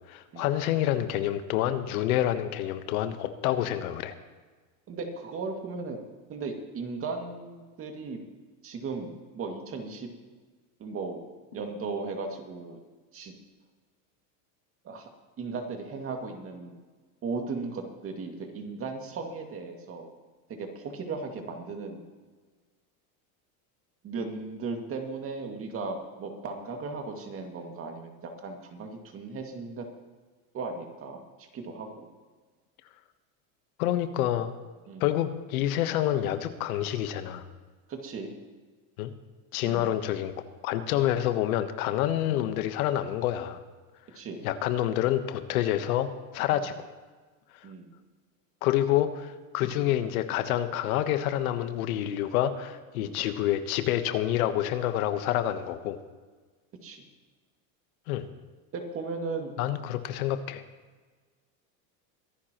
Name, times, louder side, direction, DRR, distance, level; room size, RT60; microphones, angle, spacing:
voice 1, 0.1-4.1 33.8-34.5 35.0-37.4 39.0-39.1 39.5-40.3 40.6-43.6 44.4-46.9 48.6-56.0 58.1-58.2 59.6-60.6, left 12 dB, 85° left, 9 dB, 1.2 m, -28 dB
voice 2, 4.9-6.0 6.3-8.2 8.6-10.1 10.8-11.2 11.5-12.8 13.1-13.3 14.8-15.1 15.4-16.8 17.2-20.1 20.5-22.0 24.0-29.9 30.5-32.1 34.9-35.1 37.9-38.4 39.6-39.9 42.3-42.4 44.1-44.5 46.5-46.6 47.6-47.9 49.7-50.0 53.0-53.2 56.8-57.0 58.7-59.5, right 4 dB, 30° right, 3 dB, 2.2 m, -36 dB
23.0 x 11.5 x 3.0 m, 1.4 s
supercardioid pair, 140°, 42 cm